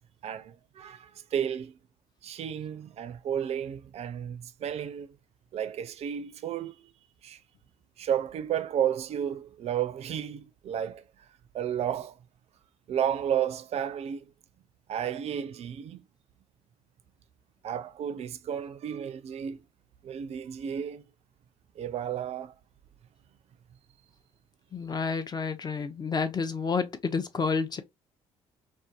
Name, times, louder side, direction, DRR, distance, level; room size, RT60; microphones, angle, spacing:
voice 1, 0.2-1.8 2.2-5.1 5.5-6.7 7.2-7.4 8.0-11.0 11.5-12.2 12.9-14.3 14.9-16.0 17.6-19.6 20.0-21.0 21.8-22.5, right 9 dB, 50° right, 0.4 m, -32 dB
voice 2, 24.7-27.8, left 5 dB, 30° left, 0.5 m, -30 dB
2.6 x 2.2 x 2.4 m
hypercardioid pair, 60°, 14 cm